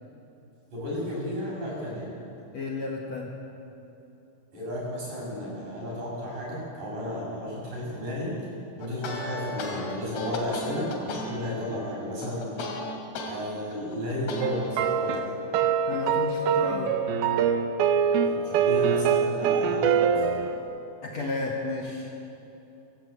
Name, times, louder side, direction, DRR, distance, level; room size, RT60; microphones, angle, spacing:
voice 1, 0.7-2.1 4.5-8.3 8.8-12.5 13.2-15.2 18.2-20.3, left 1 dB, 50° right, -4 dB, 8.6 m, -33 dB
voice 2, 2.5-3.3 15.9-16.9 21.0-22.1, left 2 dB, 50° left, -1 dB, 2.3 m, -32 dB
sound 1, 8.8-13.3 13.7-14.9, left 2 dB, 80° left, 4.7 m, -35 dB
sound 2, 14.4-20.6, right 7 dB, 75° right, 2.6 m, -24 dB
27.5 x 14.5 x 8.1 m, 2.9 s
omnidirectional pair, 4.7 m